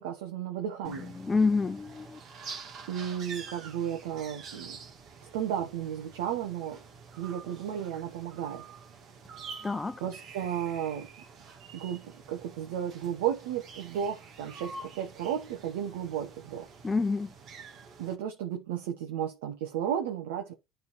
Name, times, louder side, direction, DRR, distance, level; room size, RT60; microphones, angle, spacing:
voice 1, 0.0-1.1 2.9-4.8 5.2-6.8 7.2-8.6 10.0-11.1 11.7-16.7 18.0-20.5, right 9 dB, 80° right, 1.2 m, -34 dB
voice 2, 0.8-2.2 9.6-10.0 16.8-17.3, left 4 dB, 20° left, 0.7 m, -28 dB
sound 1, 0.8-18.1, right 5 dB, 55° right, 2.0 m, -47 dB
9.5 x 3.8 x 4.7 m
hypercardioid pair, 80°, 0 cm